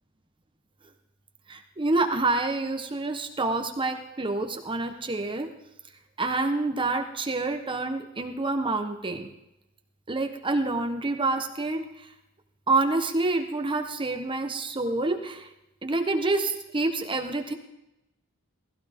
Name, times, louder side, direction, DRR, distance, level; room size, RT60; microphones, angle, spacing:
voice 1, 1.5-5.5 6.2-9.3 10.1-12.1 12.7-15.5 15.8-17.6, right 2 dB, 25° right, 6 dB, 1.0 m, -27 dB
17.0 x 16.0 x 3.6 m, 0.90 s
head